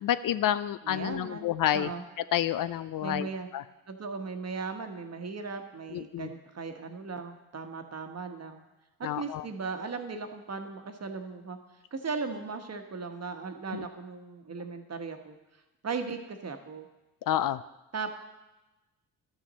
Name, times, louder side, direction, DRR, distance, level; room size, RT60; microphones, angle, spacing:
voice 1, 0.0-1.9 2.3-3.3 3.5-3.6 5.9-6.3 9.0-9.4 13.7-13.9 17.3-17.6, left 11 dB, 55° left, 14 dB, 0.5 m, -29 dB
voice 2, 0.8-2.0 3.0-3.5 3.9-8.6 9.2-11.6 11.9-15.4 15.8-16.9 17.9-18.2, right 4 dB, 40° right, 6 dB, 1.2 m, -37 dB
12.5 x 6.1 x 4.1 m, 1.0 s
hypercardioid pair, 45°, 40 cm